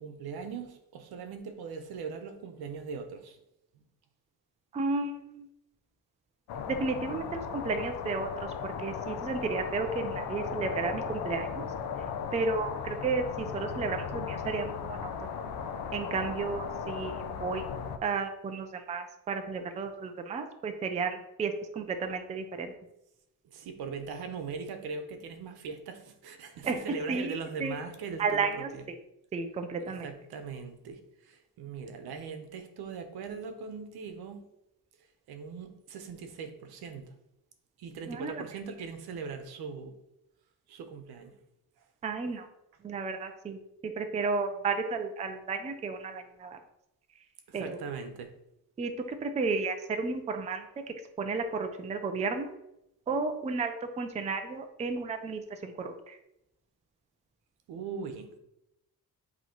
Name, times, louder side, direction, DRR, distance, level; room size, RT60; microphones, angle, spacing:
voice 1, 0.0-3.4 3.7-3.8 23.4-28.8 29.8-34.5 35.3-37.1 37.8-39.9 40.7-41.3 47.5-48.3 57.7-58.3, right 5 dB, 80° right, 7 dB, 1.0 m, -40 dB
voice 2, 4.7-5.5 6.7-11.6 12.3-15.1 15.9-17.6 18.0-22.7 26.6-26.8 27.1-27.4 27.6-27.8 28.2-28.7 29.3-30.1 38.1-38.4 42.0-42.5 42.8-46.6 47.5-47.8 48.8-50.6 51.2-52.5 53.1-56.2, right 4 dB, 20° right, 6 dB, 0.4 m, -33 dB
sound 1, 6.5-18.0, left 6 dB, 80° left, 0.7 m, -37 dB
7.9 x 3.0 x 4.4 m, 0.85 s
cardioid pair, 175°, 37 cm